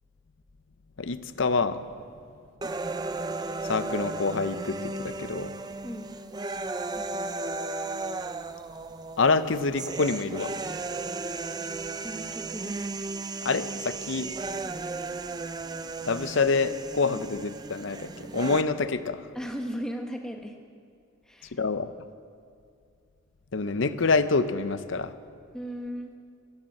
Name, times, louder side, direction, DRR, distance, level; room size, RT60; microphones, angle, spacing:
voice 1, 1.0-1.9 3.6-5.5 9.2-10.5 13.4-14.3 16.1-19.2 21.5-21.9 23.5-25.1, left 4 dB, 60° left, 12 dB, 0.7 m, -26 dB
sound 1, 2.6-18.6, right 3 dB, 20° right, 0.4 m, -35 dB
voice 2, 6.9-7.3 12.0-12.8 17.1-17.2 19.3-20.6 21.2-21.6 25.5-26.2, equal, 5° left, 3 dB, 1.1 m, -37 dB
13.5 x 12.0 x 7.8 m, 2.4 s
head